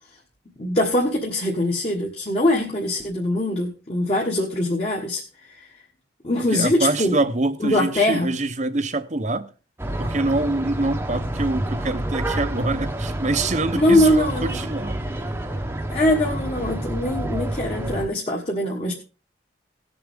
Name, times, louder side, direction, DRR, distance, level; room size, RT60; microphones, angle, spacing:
voice 1, 0.6-5.2 5.6-5.7 6.2-7.2 7.6-8.3 13.8-14.6 15.9-18.9, left 1 dB, 30° left, 1.5 m, -22 dB
voice 2, 6.5-9.5 10.0-15.0, right 2 dB, 40° right, 0.8 m, -25 dB
sound 1, 9.8-18.1, right 1 dB, 10° right, 0.9 m, -28 dB
18.0 x 7.0 x 3.6 m
head